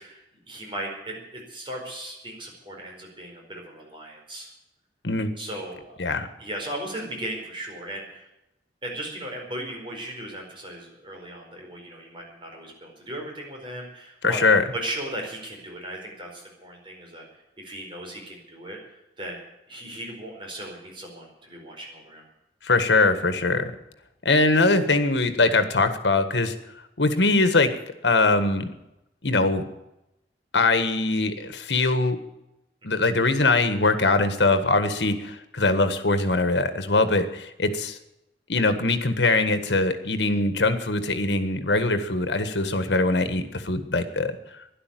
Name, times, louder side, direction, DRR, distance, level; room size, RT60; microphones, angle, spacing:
voice 1, 0.0-4.5 5.4-6.0 6.4-8.3 8.8-14.4 14.7-17.2 17.6-19.4 19.7-22.3 32.9-33.0, right 1 dB, 30° right, 0 dB, 4.7 m, -37 dB
voice 2, 14.2-14.6 22.6-23.7 24.2-26.5 27.0-27.7 28.0-28.7 29.2-29.6 30.5-32.2 32.8-38.0 38.5-44.3, left 3 dB, 80° left, 10 dB, 1.6 m, -22 dB
12.0 x 11.5 x 9.3 m, 0.88 s
head